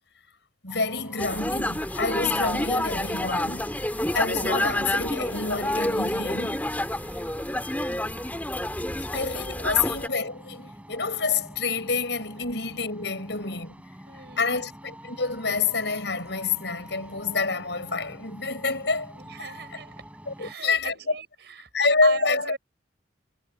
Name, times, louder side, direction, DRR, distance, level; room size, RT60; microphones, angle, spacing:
voice 1, 0.6-3.7 4.1-6.6 9.1-13.8 14.4-19.1 19.4-19.6 20.3-21.2 21.7-22.6, left 4 dB, 70° left, 7.8 m, -27 dB
sound 1, 0.7-20.5, right 1 dB, 10° right, 5.3 m, -46 dB
sound 2, 1.2-10.1, left 1 dB, 10° left, 3.1 m, -28 dB
voice 2, 9.6-10.0 14.1-14.7 19.2-20.0 20.4-21.7 22.0-22.6, right 4 dB, 65° right, 6.2 m, -39 dB
head